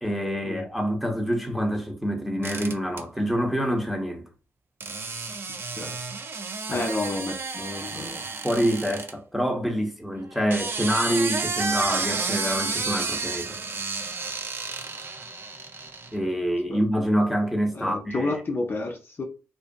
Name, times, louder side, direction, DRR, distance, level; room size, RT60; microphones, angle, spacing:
voice 1, 0.0-4.3 6.7-6.9 8.4-13.6 16.1-18.4, equal, ahead, 0.8 m, -26 dB
sound 1, 2.4-3.0 4.8-9.1 10.3-16.1, right 4 dB, 45° right, 0.4 m, -31 dB
voice 2, 6.7-8.2 16.7-16.8 17.7-19.2, left 2 dB, 45° left, 0.5 m, -30 dB
2.6 x 2.3 x 2.2 m
supercardioid pair, 45°, 5 cm